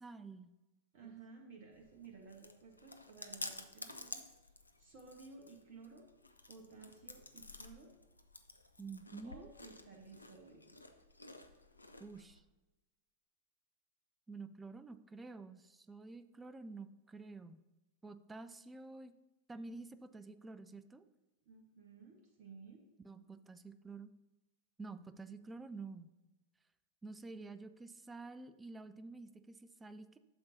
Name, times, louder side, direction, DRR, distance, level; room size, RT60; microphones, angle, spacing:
voice 1, 0.0-0.5 1.0-1.1 8.8-9.5 12.0-12.4 14.3-17.6 18.0-19.1 19.5-21.0 23.0-24.1 24.8-26.1 27.0-30.2, right 3 dB, 10° right, 12 dB, 0.5 m, -49 dB
voice 2, 0.9-4.2 4.8-6.1 6.5-7.9 9.2-10.8 21.4-22.8, right 4 dB, 45° right, 3 dB, 1.1 m, -55 dB
Chewing mastication, 1.7-12.4, left 2 dB, 85° left, 0.5 m, -52 dB
12.0 x 6.8 x 2.7 m, 1.0 s
figure-of-eight pair, 90°, 0 cm